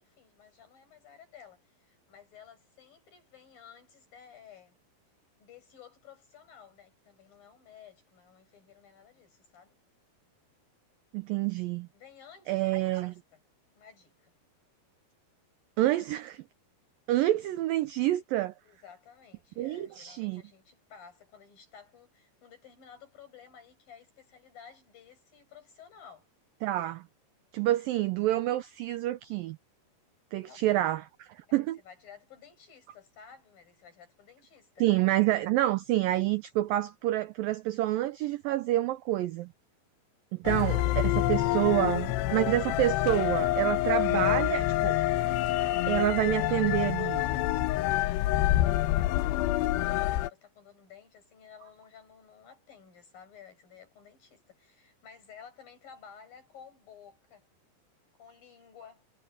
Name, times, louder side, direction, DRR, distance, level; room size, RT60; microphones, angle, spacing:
voice 1, 0.0-4.8 5.4-9.8 11.9-13.4 13.8-14.3 18.6-26.3 30.4-30.9 31.5-34.9 46.5-48.4 48.8-57.5 58.2-59.1, left 7 dB, 55° left, 8.8 m, -54 dB
voice 2, 11.1-11.9 12.5-13.1 15.8-16.4 17.1-18.5 19.6-20.4 26.6-27.0 27.5-29.6 30.3-31.8 34.8-39.5 40.3-45.0 45.9-47.2, right 15 dB, 85° right, 2.0 m, -28 dB
sound 1, 40.5-50.3, left 15 dB, 85° left, 2.8 m, -27 dB
omnidirectional pair, 4.9 m